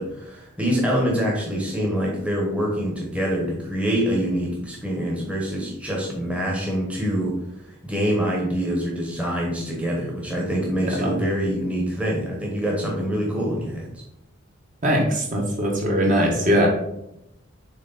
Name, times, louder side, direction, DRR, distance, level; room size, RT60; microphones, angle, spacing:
voice 1, 0.0-7.3 7.8-13.9, equal, 5° right, -3 dB, 1.1 m, -25 dB
voice 2, 14.8-16.7, equal, 35° right, 0 dB, 1.4 m, -20 dB
7.3 x 3.3 x 4.1 m, 0.83 s
head